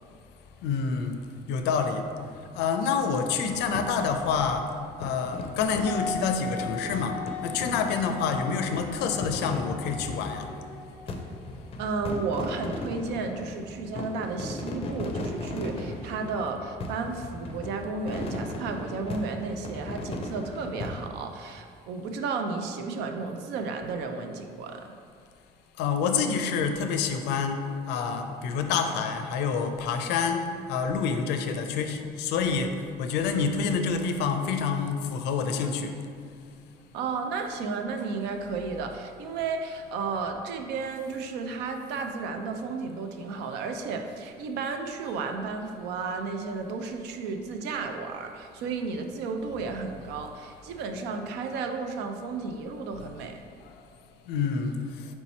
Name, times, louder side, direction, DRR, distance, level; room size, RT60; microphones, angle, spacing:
voice 1, 0.6-1.2 1.5-2.0 2.6-4.6 5.0-7.2 7.4-10.5 25.8-32.7 33.0-35.9 53.0-53.1 54.3-54.8, left 5 dB, 85° left, 6 dB, 0.4 m, -27 dB
sound 1, 3.5-21.1, left 2 dB, 35° left, 0.5 m, -38 dB
Wind instrument woodwind instrument, 5.8-11.4, left 5 dB, 10° left, 0.8 m, -38 dB
voice 2, 11.8-24.9 36.9-53.4, right 4 dB, 85° right, 5 dB, 0.5 m, -33 dB
4.5 x 2.9 x 4.1 m, 2.2 s
cardioid pair, 110°, 17 cm